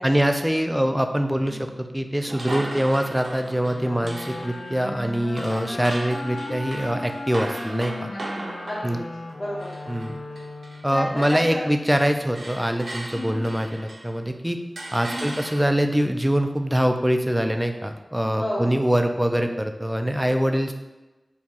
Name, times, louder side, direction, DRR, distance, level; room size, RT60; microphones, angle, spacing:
voice 1, 0.0-8.1 8.8-9.0 9.9-10.2 10.8-14.6 14.9-20.7, equal, 5° right, 6 dB, 0.3 m, -24 dB
sound 1, 2.3-10.9 11.2-14.2 14.8-16.0, right 1 dB, 80° right, 0.4 m, -38 dB
sound 2, 3.6-11.1, left 2 dB, 75° left, 0.3 m, -36 dB
voice 2, 8.1-9.0 9.4-9.7 10.9-11.6 13.1-13.4 15.1-15.3 18.4-18.8, equal, 40° left, -7 dB, 0.7 m, -32 dB
4.5 x 2.3 x 2.8 m, 1.1 s
wide cardioid pair, 50°, 0 cm